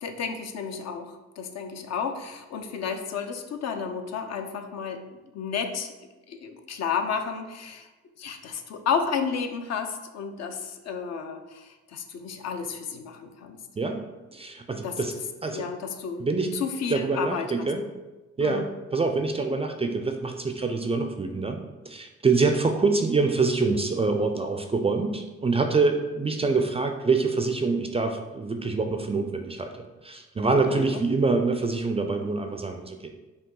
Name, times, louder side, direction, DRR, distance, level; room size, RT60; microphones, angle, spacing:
voice 1, 0.0-5.0 5.3-5.9 6.3-7.9 8.2-13.6 14.8-15.0 15.5-16.3 16.5-17.7 18.4-18.7 30.7-31.0, left 6 dB, 60° left, 6 dB, 0.6 m, -32 dB
voice 2, 14.3-15.1 15.4-15.7 16.2-16.5 16.9-17.8 18.4-18.7 18.9-21.6 21.9-33.1, right 3 dB, 20° right, 5 dB, 0.3 m, -25 dB
5.4 x 2.3 x 3.7 m, 1.1 s
cardioid pair, 90°, 30 cm